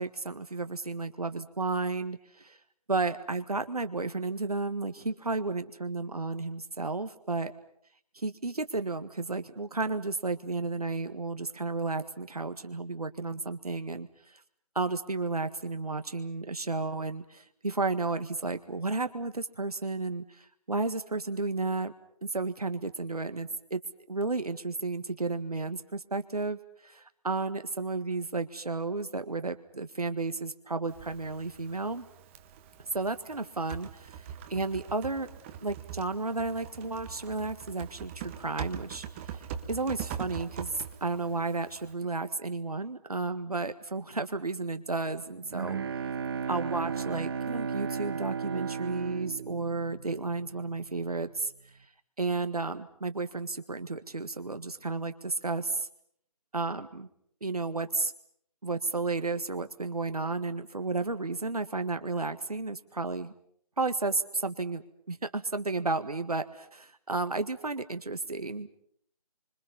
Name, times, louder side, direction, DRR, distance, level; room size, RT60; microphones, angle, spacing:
voice 1, 0.0-2.6 2.9-7.5 8.1-14.1 14.7-21.9 22.2-23.8 24.1-32.0 32.9-34.2 34.5-35.3 35.6-39.0 39.3-39.4 39.7-46.1 46.5-51.5 52.2-55.9 56.5-57.1 57.4-58.1 58.6-63.3 63.8-68.7, right 3 dB, 75° right, 9 dB, 1.7 m, -32 dB
Typing, 30.9-41.9, right 9 dB, 20° right, 1.4 m, -43 dB
Bowed string instrument, 45.2-50.7, right 6 dB, 40° right, 1.6 m, -35 dB
29.5 x 25.5 x 5.5 m, 0.68 s
figure-of-eight pair, 145°, 20 cm